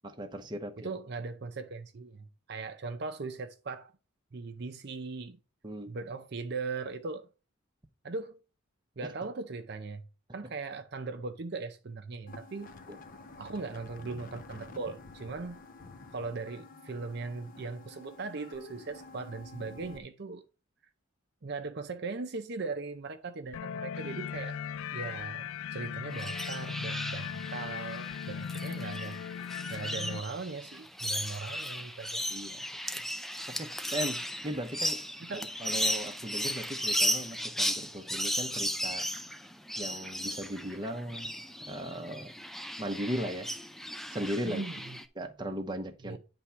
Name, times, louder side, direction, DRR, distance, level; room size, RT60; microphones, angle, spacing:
voice 1, 0.2-0.9 5.6-5.9 32.3-32.6 33.5-35.0 35.6-39.1 39.8-41.4 41.7-42.3 42.8-43.5 44.1-44.6 45.2-46.2, equal, 20° right, 0.8 m, -37 dB
voice 2, 0.8-3.9 4.3-5.4 5.9-7.3 8.0-8.4 9.0-10.0 10.3-12.7 13.4-15.6 16.1-20.4 21.4-24.6 24.9-29.2 29.7-32.3 35.2-35.5 44.5-45.0 46.0-46.2, right 4 dB, 50° right, 0.6 m, -39 dB
sound 1, 12.3-20.0, left 3 dB, 40° left, 0.7 m, -50 dB
sound 2, 23.5-30.2, left 8 dB, 75° left, 0.3 m, -38 dB
sound 3, 26.1-45.0, equal, ahead, 0.4 m, -35 dB
9.8 x 3.5 x 5.6 m
head